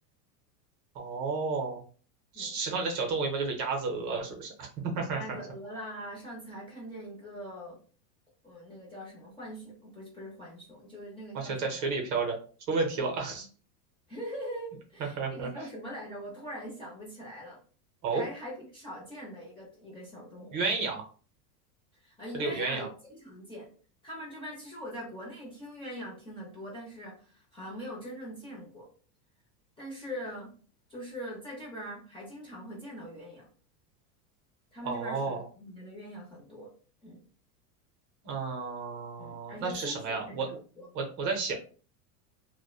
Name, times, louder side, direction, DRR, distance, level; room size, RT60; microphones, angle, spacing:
voice 1, 0.9-1.8 2.3-5.4 11.3-12.4 12.7-13.5 15.0-15.5 18.0-18.3 20.5-21.1 22.3-22.9 34.8-35.4 38.2-40.5 40.9-41.5, right 4 dB, 40° right, 2 dB, 0.7 m, -32 dB
voice 2, 5.1-7.8 8.4-11.8 14.1-17.6 18.1-20.6 22.0-22.9 23.2-23.7 24.0-28.9 29.8-30.5 30.9-33.5 34.7-36.7 37.0-37.2 39.2-40.9, equal, 10° left, -5 dB, 0.6 m, -42 dB
2.8 x 2.2 x 2.3 m, 0.40 s
supercardioid pair, 135°, 49 cm